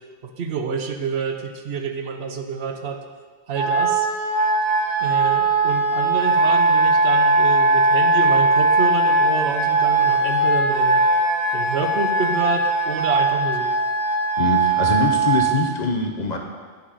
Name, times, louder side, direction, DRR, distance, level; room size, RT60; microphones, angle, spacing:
voice 1, 0.2-3.0 3.5-4.1 5.0-11.0 11.5-13.7, right 5 dB, 75° right, 5 dB, 1.0 m, -28 dB
Wind instrument woodwind instrument, 3.5-15.6, right 2 dB, 50° right, 1.6 m, -19 dB
voice 2, 14.4-16.4, left 3 dB, 45° left, 3 dB, 0.8 m, -23 dB
10.0 x 6.1 x 4.1 m, 1.5 s
omnidirectional pair, 1.1 m